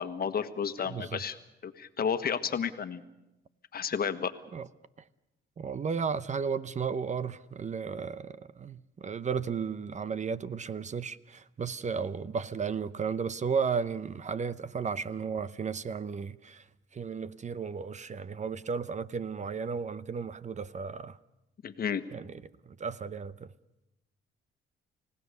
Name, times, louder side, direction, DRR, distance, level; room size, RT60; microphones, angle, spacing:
voice 1, 0.0-1.4 1.6-3.0 3.7-4.3 21.6-22.0, left 7 dB, 50° left, 1.4 m, -31 dB
voice 2, 0.9-1.2 4.5-4.7 5.6-16.6 16.9-21.2 22.1-23.5, right 6 dB, 35° right, 0.7 m, -34 dB
29.5 x 17.0 x 6.8 m
cardioid pair, 90°, 20 cm